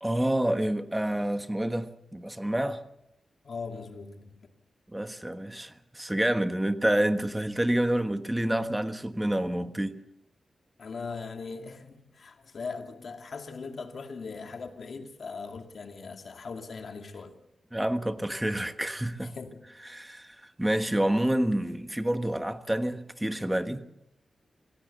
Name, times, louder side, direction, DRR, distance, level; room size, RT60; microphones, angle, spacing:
voice 1, 0.0-2.8 4.9-10.0 17.7-19.4 19.9-23.8, right 1 dB, 10° right, 1.3 m, -28 dB
voice 2, 3.4-4.5 10.8-17.4 19.2-19.7, left 4 dB, 55° left, 2.3 m, -40 dB
26.0 x 17.0 x 6.9 m
wide cardioid pair, 120°, 0 cm